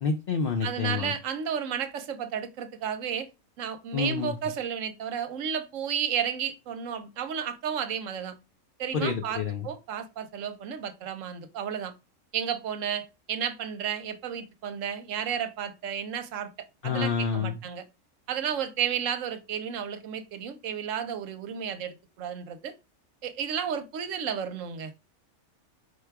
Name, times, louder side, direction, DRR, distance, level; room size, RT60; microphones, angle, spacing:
voice 1, 0.0-1.1 3.9-4.3 8.9-9.7 16.8-17.6, left 5 dB, 65° left, 0.5 m, -28 dB
voice 2, 0.6-3.3 3.6-8.4 8.8-11.9 12.3-17.8 18.3-22.7 23.2-24.9, right 8 dB, 65° right, 1.0 m, -32 dB
4.7 x 2.3 x 4.5 m
omnidirectional pair, 1.5 m